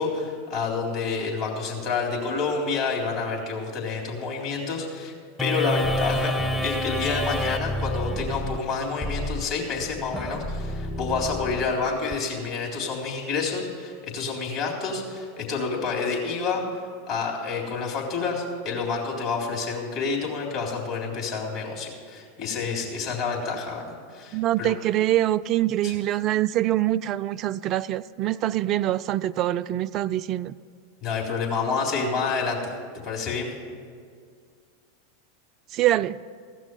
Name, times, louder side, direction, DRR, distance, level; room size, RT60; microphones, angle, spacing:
voice 1, 0.0-5.1 5.4-24.7 25.8-26.0 31.0-32.7 33.0-33.5, left 4 dB, 50° left, -1 dB, 3.5 m, -28 dB
sound 1, 5.4-12.2, equal, 10° left, 0.7 m, -29 dB
voice 2, 24.3-30.5 35.7-36.2, right 14 dB, 40° right, 15 dB, 0.3 m, -24 dB
15.5 x 6.1 x 9.2 m, 2.1 s
figure-of-eight pair, 90°, 0 cm